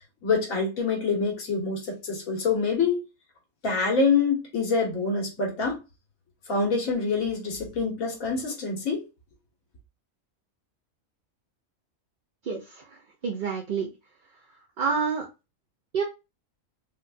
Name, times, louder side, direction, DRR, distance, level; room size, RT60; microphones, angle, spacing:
voice 1, 0.2-3.0 3.6-5.8 6.5-9.0, left 4 dB, 80° left, 1.7 m, -26 dB
voice 2, 12.5-12.8 13.2-13.9 14.8-15.3 15.9-16.0, right 5 dB, 50° right, 0.6 m, -27 dB
4.5 x 2.3 x 2.5 m
omnidirectional pair, 1.4 m